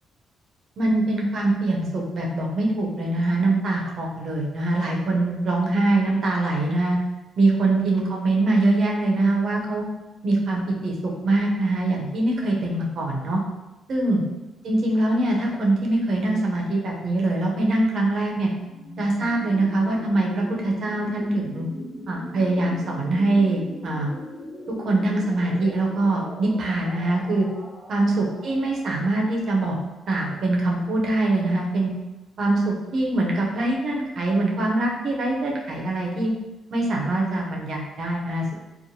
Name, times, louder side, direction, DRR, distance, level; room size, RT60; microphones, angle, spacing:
voice 1, 0.8-7.0 7.4-9.8 10.2-13.4 13.9-14.2 14.6-18.5 19.0-21.7 22.1-24.1 24.8-27.5 27.9-29.8 30.1-31.9 32.4-36.3 36.7-38.5, right 2 dB, 60° right, -1 dB, 0.6 m, -23 dB
sound 1, 18.6-30.4, left 1 dB, 15° left, 0.5 m, -39 dB
3.0 x 2.0 x 2.7 m, 1.1 s
cardioid pair, 90°, 0 cm